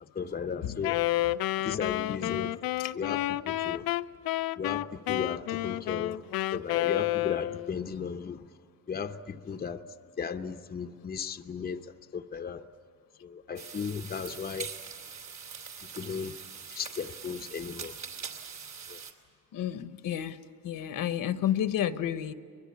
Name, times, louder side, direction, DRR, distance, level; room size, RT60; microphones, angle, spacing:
voice 1, 0.2-1.0 1.6-2.5 2.9-3.8 4.6-6.2 6.5-8.4 8.9-9.8 10.2-12.6 13.2-14.7 16.0-16.4 16.7-17.9 18.9-19.0, left 6 dB, 25° left, 0.8 m, -35 dB
Wind instrument woodwind instrument, 0.8-7.8, left 16 dB, 90° left, 0.6 m, -30 dB
sound 1, 13.6-19.1, right 6 dB, 50° right, 2.8 m, -43 dB
voice 2, 19.5-20.4 20.6-22.3, left 10 dB, 70° left, 1.1 m, -31 dB
24.0 x 21.5 x 8.5 m
cardioid pair, 135°, 34 cm